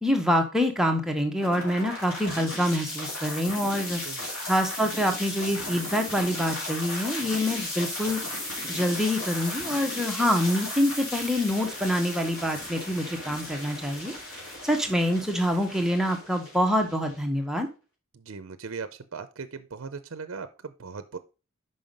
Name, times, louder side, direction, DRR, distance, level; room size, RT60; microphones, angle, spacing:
voice 1, 0.0-4.0 4.5-8.2 8.7-17.7, equal, ahead, 3 dB, 0.8 m, -26 dB
sound 1, 1.4-17.4, left 1 dB, 80° left, 3.0 m, -35 dB
voice 2, 18.1-21.2, right 5 dB, 65° right, 11 dB, 0.5 m, -38 dB
5.6 x 5.3 x 5.2 m, 0.33 s
head